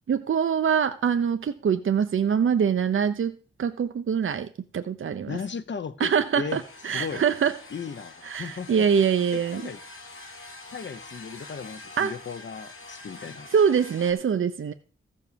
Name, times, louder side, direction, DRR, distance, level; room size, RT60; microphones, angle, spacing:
voice 1, 0.1-5.4 6.0-7.5 8.2-9.6 12.0-12.1 13.5-14.7, right 7 dB, 75° right, 8 dB, 0.8 m, -24 dB
voice 2, 5.3-6.6 6.9-7.2 7.7-8.9 9.3-9.8 10.7-13.5, left 6 dB, 60° left, 12 dB, 1.0 m, -36 dB
sound 1, 6.5-14.1, left 2 dB, 85° left, 2.5 m, -45 dB
15.0 x 5.5 x 6.9 m, 0.38 s
wide cardioid pair, 155°, 21 cm